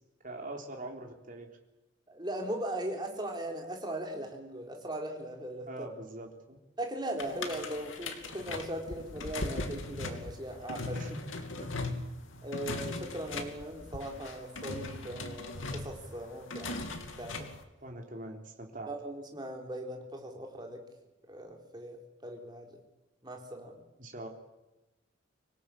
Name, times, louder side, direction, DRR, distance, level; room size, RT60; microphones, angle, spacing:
voice 1, 0.2-1.5 5.7-6.6 10.9-11.2 11.6-11.8 17.8-18.9 24.0-24.3, right 2 dB, 45° right, 2 dB, 3.7 m, -43 dB
voice 2, 2.1-5.7 6.8-11.1 12.4-16.8 17.2-17.5 18.9-20.8 21.3-22.8 23.2-23.8, right 1 dB, 20° right, 2 dB, 4.0 m, -39 dB
sound 1, 7.2-17.6, left 2 dB, 90° left, 2.8 m, -39 dB
25.5 x 17.5 x 8.8 m, 1.0 s
head